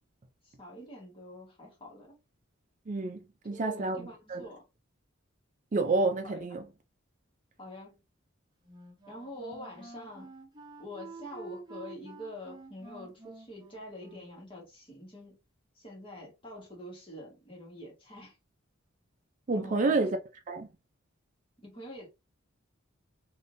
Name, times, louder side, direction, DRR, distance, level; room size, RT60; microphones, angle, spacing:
voice 1, 0.4-2.2 3.5-4.6 6.2-6.5 7.6-8.0 9.1-10.3 10.8-15.4 15.7-18.4 19.5-20.0 21.6-22.1, equal, 25° left, 1.4 m, -46 dB
voice 2, 2.9-4.5 5.7-6.6 19.5-20.2 20.5-20.7, right 3 dB, 40° right, 0.4 m, -29 dB
Wind instrument woodwind instrument, 8.6-14.5, right 2 dB, 20° right, 0.9 m, -49 dB
3.6 x 2.6 x 2.6 m
head